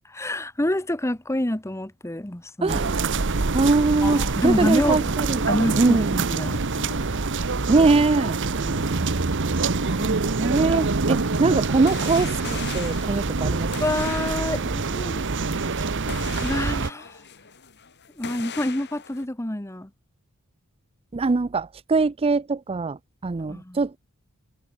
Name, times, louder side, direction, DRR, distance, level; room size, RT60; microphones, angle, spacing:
voice 1, 0.1-2.8 4.0-5.1 5.5-6.0 6.3-7.0 8.6-9.2 13.8-15.2 15.5-15.9 16.4-17.2 18.2-19.9 23.5-23.8, left 1 dB, 10° left, 1.1 m, -28 dB
voice 2, 2.6-3.1 3.5-5.5 5.8-6.2 7.7-8.4 9.9-13.7 21.1-24.0, right 3 dB, 25° right, 0.4 m, -22 dB
sound 1, 2.7-16.9, right 3 dB, 55° right, 1.1 m, -25 dB
sound 2, 3.8-19.3, left 6 dB, 50° left, 3.4 m, -43 dB
sound 3, 17.0-17.1, right 1 dB, 75° right, 5.0 m, -45 dB
head